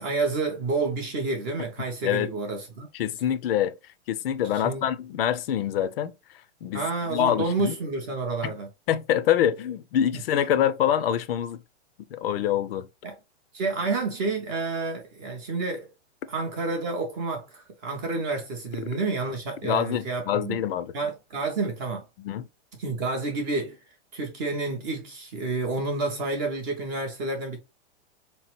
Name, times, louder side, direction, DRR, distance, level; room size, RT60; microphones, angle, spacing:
voice 1, 0.0-2.9 4.5-4.9 6.7-8.7 10.1-10.2 13.0-13.2 13.5-15.9 16.3-20.6 20.9-22.0 22.8-23.8 24.1-27.6, right 3 dB, 20° right, 0.3 m, -29 dB
voice 2, 2.0-2.3 2.9-3.7 4.1-6.1 6.6-7.7 8.4-8.5 8.9-11.6 12.1-12.9 19.6-20.9 22.2-22.4, left 10 dB, 55° left, 0.5 m, -25 dB
3.6 x 3.0 x 2.9 m
hypercardioid pair, 155°, 35 cm